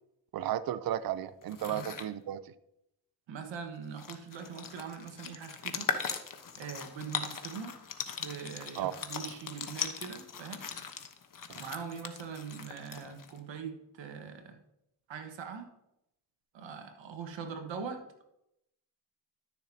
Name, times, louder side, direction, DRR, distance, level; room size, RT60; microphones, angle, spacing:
voice 1, 0.3-2.5 8.8-8.9 11.5-11.6, right 11 dB, 55° right, 14 dB, 0.6 m, -34 dB
sound 1, 1.4-2.1 3.5-3.6 3.8-13.4, left 6 dB, 45° left, 1.2 m, -39 dB
voice 2, 3.3-5.9 6.6-7.7 8.2-10.6 11.5-14.6 15.1-15.7 16.5-18.0, right 6 dB, 80° right, 6 dB, 1.6 m, -42 dB
13.0 x 7.0 x 2.8 m, 0.82 s
cardioid pair, 65°, 44 cm